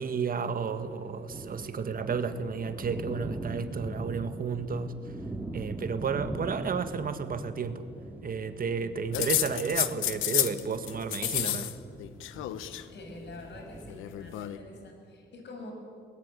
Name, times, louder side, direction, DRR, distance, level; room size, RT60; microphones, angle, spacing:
voice 1, 0.0-4.9 5.5-7.9 8.2-11.7, right 5 dB, 45° right, 10 dB, 1.7 m, -32 dB
sound 1, 0.7-14.9, right 2 dB, 10° right, 2.5 m, -42 dB
sound 2, 9.1-10.6 10.9-11.7 12.0-12.8 13.9-14.6, left 14 dB, 90° left, 1.0 m, -30 dB
voice 2, 12.9-15.7, left 2 dB, 60° left, 3 dB, 6.4 m, -45 dB
21.5 x 19.5 x 9.8 m, 2.3 s
cardioid pair, 90°, 20 cm